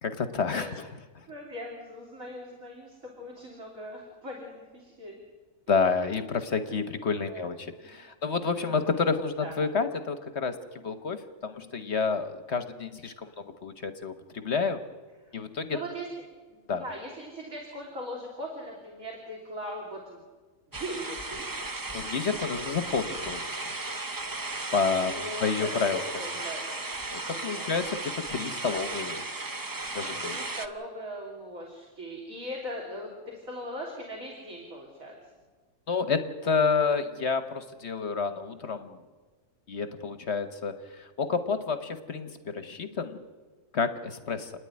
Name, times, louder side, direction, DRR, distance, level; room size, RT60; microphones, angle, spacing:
voice 1, 0.0-1.3 5.7-14.8 15.3-15.8 16.7-16.8 21.9-23.6 24.7-25.1 25.4-26.0 27.1-29.3 29.9-30.4 35.9-39.0 39.7-43.3 43.7-44.5, left 5 dB, 45° left, 10 dB, 1.2 m, -29 dB
voice 2, 1.3-5.2 7.3-7.4 7.8-7.9 8.5-8.9 9.4-9.5 15.7-16.1 16.5-20.2 20.7-21.4 25.0-27.7 30.2-35.2, equal, 55° right, -1 dB, 3.7 m, -40 dB
sound 1, 20.7-30.7, right 2 dB, 25° right, 0.4 m, -35 dB
29.5 x 10.0 x 9.6 m, 1.4 s
omnidirectional pair, 1.8 m